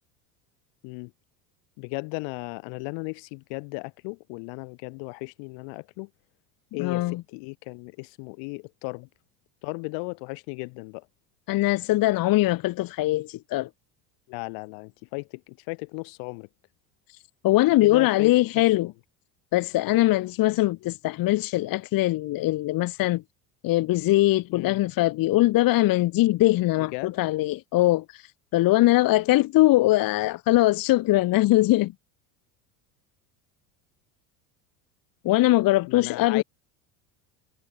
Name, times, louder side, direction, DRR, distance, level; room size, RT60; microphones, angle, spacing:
voice 1, 1.8-6.1 6.7-9.1 9.6-11.1 14.3-16.5 17.8-18.3 24.5-24.8 26.9-27.1 35.8-36.4, left 39 dB, 70° left, 3.5 m, -36 dB
voice 2, 6.8-7.2 11.5-13.7 17.4-18.9 19.5-23.2 23.6-31.9 35.2-36.4, left 17 dB, 45° left, 0.9 m, -21 dB
supercardioid pair, 90°, 46 cm